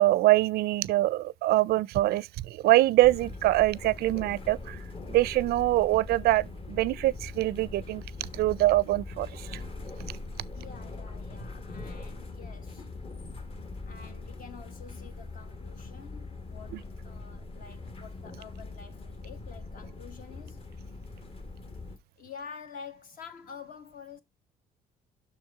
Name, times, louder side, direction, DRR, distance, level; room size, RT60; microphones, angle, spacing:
voice 1, 0.0-4.8 5.1-8.0 8.3-9.6 16.7-16.8, right 16 dB, 70° right, 0.4 m, -24 dB
sound 1, 3.0-22.0, left 3 dB, 35° left, 1.1 m, -42 dB
voice 2, 10.5-12.9 13.8-20.7 22.2-24.2, left 6 dB, 55° left, 1.4 m, -48 dB
6.0 x 4.7 x 4.6 m
cardioid pair, 110°, 17 cm